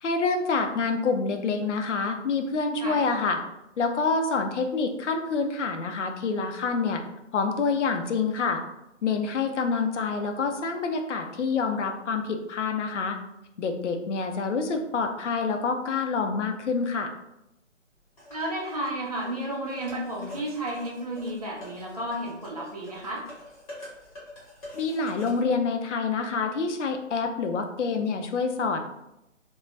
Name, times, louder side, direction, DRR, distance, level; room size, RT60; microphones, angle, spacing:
voice 1, 0.0-3.4 3.8-7.0 7.3-8.6 9.0-13.2 13.6-17.1 24.7-28.8, left 4 dB, 70° left, 5 dB, 0.5 m, -27 dB
sound 1, 18.2-25.4, left 1 dB, 30° left, 1.1 m, -47 dB
voice 2, 18.3-23.3, right 1 dB, 30° right, -4 dB, 0.4 m, -32 dB
3.1 x 2.2 x 2.4 m, 0.88 s
figure-of-eight pair, 160°, 38 cm